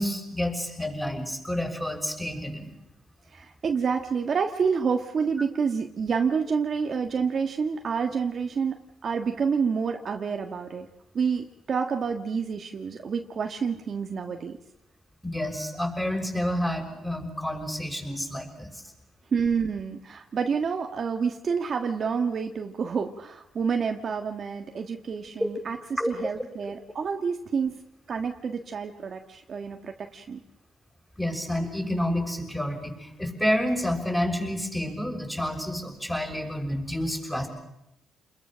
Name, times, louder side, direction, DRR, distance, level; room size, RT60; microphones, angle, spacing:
voice 1, 0.0-2.7 15.2-18.7 25.4-25.5 26.0-26.1 31.2-37.5, left 1 dB, 5° left, 1 dB, 6.2 m, -29 dB
voice 2, 3.3-10.9 11.1-14.6 19.3-27.8 28.1-30.4, right 6 dB, 50° right, 4 dB, 1.6 m, -28 dB
29.0 x 21.5 x 6.3 m, 0.85 s
cardioid pair, 90°, 0 cm